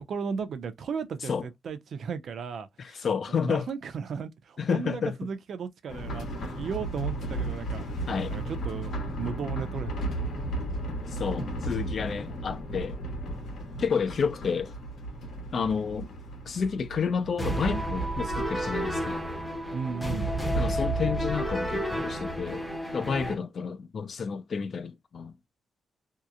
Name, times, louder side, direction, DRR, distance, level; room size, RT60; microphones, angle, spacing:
voice 1, 0.0-3.1 3.4-10.1 19.7-20.3, right 6 dB, 60° right, 0.5 m, -35 dB
voice 2, 2.8-3.7 4.6-5.2 8.1-8.4 11.1-13.0 13.8-14.7 15.5-16.1 16.5-19.3 20.6-22.6 22.9-25.4, left 6 dB, 45° left, 0.3 m, -30 dB
revolving stage, 5.9-21.4 21.6-21.7 22.1-22.2, right 1 dB, 75° left, 1.0 m, -35 dB
sound 1, 17.4-23.3, right 1 dB, 5° left, 0.6 m, -30 dB
2.8 x 2.0 x 2.4 m
wide cardioid pair, 155°, 0 cm